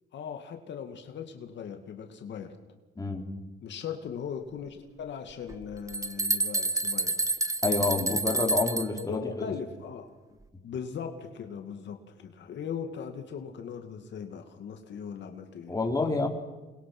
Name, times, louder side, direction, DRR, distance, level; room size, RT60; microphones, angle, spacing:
voice 1, 0.1-2.6 3.6-7.1 7.7-8.2 9.0-10.1 10.6-15.7, left 7 dB, 65° left, 5 dB, 2.2 m, -39 dB
sound 1, 5.5-5.6 5.9-9.0, right 2 dB, 15° right, 1.3 m, -28 dB
voice 2, 7.6-9.2 15.7-16.3, left 3 dB, 20° left, 2 dB, 3.9 m, -28 dB
29.0 x 21.5 x 6.1 m, 1.2 s
cardioid pair, 90°, 20 cm